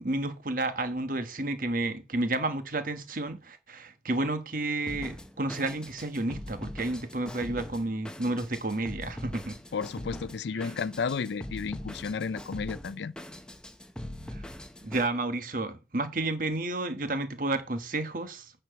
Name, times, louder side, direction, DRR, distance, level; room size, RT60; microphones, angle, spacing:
voice 1, 0.0-9.6 10.5-10.7 14.3-14.4 14.8-18.5, right 2 dB, 50° right, 1.2 m, -31 dB
Drum kit, 4.9-15.1, left 1 dB, 5° left, 0.8 m, -42 dB
voice 2, 9.7-13.1, left 5 dB, 75° left, 0.4 m, -32 dB
9.6 x 4.4 x 5.7 m
head